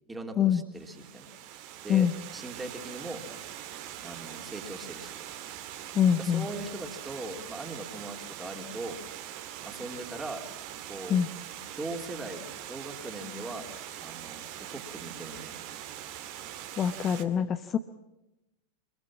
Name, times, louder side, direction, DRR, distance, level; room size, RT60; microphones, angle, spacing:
voice 1, 0.1-1.3 1.8-2.1 2.3-3.2 4.0-5.2 6.2-9.0 9.6-10.4 10.9-11.2 11.8-12.4 12.7-13.7 14.0-15.6, right 2 dB, 10° right, 4 dB, 3.3 m, -40 dB
Water, 0.7-17.2, right 11 dB, 45° right, 2.2 m, -42 dB
voice 2, 5.9-6.5 11.1-11.3 16.8-17.8, left 8 dB, 25° left, 9 dB, 1.0 m, -24 dB
25.0 x 23.0 x 7.3 m, 0.95 s
figure-of-eight pair, 90°, 0 cm